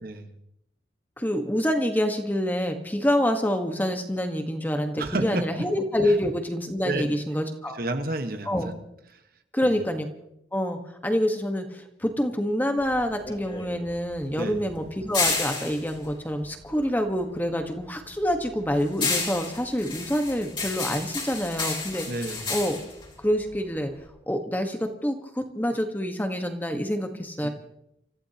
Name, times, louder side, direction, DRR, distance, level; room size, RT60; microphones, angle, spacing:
voice 1, 0.0-0.3 5.0-5.5 6.0-6.1 6.8-7.2 7.7-8.7 9.1-9.2 14.4-14.6 22.1-22.5 27.4-27.5, right 2 dB, 55° right, 6 dB, 1.4 m, -30 dB
voice 2, 1.2-7.8 8.5-8.7 9.5-10.1 10.5-22.1 22.5-22.8 23.2-23.9 24.3-27.5, equal, 10° left, 5 dB, 1.4 m, -27 dB
sound 1, 12.8-17.3 17.6-24.1, left 4 dB, 25° left, 3.3 m, -32 dB
29.5 x 15.0 x 2.9 m, 0.78 s
head